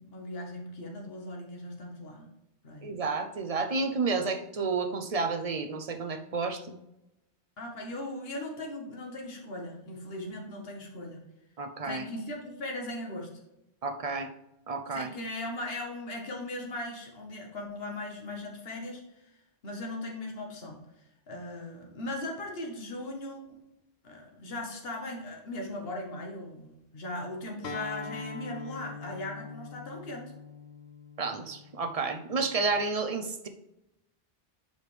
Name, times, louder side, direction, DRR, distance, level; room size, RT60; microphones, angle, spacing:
voice 1, 0.0-2.3 2.6-3.0 7.6-11.2 11.8-13.3 14.9-19.3 19.6-20.8 21.3-23.4 24.0-30.3, left 1 dB, 65° left, 0 dB, 1.6 m, -38 dB
voice 2, 2.8-6.8 11.6-12.1 13.8-14.3 14.7-15.1 31.2-33.5, right 4 dB, 40° right, 7 dB, 0.6 m, -31 dB
Acoustic guitar, 27.6-32.8, left 4 dB, 85° left, 1.1 m, -43 dB
8.1 x 5.0 x 3.3 m, 0.90 s
omnidirectional pair, 1.1 m